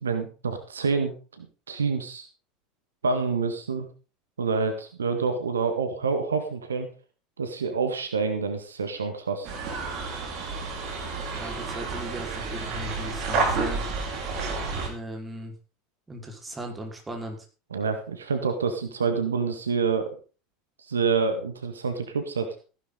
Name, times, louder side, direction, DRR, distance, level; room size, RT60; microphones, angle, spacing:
voice 1, 0.0-2.3 3.0-3.9 4.4-6.9 7.4-9.5 17.7-20.1 20.8-22.6, right 5 dB, 75° right, 8 dB, 1.8 m, -27 dB
sound 1, 9.4-14.9, right 4 dB, 45° right, 4.3 m, -30 dB
voice 2, 11.3-13.8 14.9-15.5 16.1-17.5, right 1 dB, 15° right, 2 dB, 4.7 m, -37 dB
15.5 x 11.5 x 4.0 m, 0.34 s
figure-of-eight pair, 75°, 0 cm